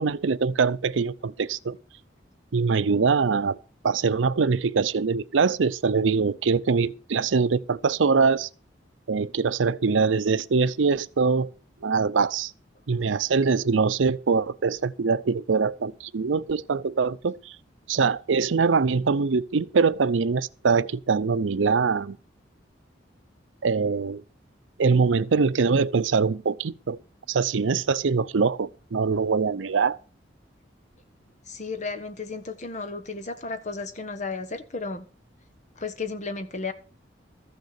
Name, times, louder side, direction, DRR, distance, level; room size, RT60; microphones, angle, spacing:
voice 1, 0.0-1.8 2.5-3.6 3.8-8.5 9.1-11.5 11.8-12.5 12.9-17.6 17.9-22.2 23.6-24.2 24.8-27.0 27.3-30.0, right 5 dB, 90° right, 0.6 m, -23 dB
voice 2, 31.5-35.1 35.8-36.7, left 4 dB, 40° left, 1.2 m, -33 dB
14.0 x 6.7 x 6.5 m
head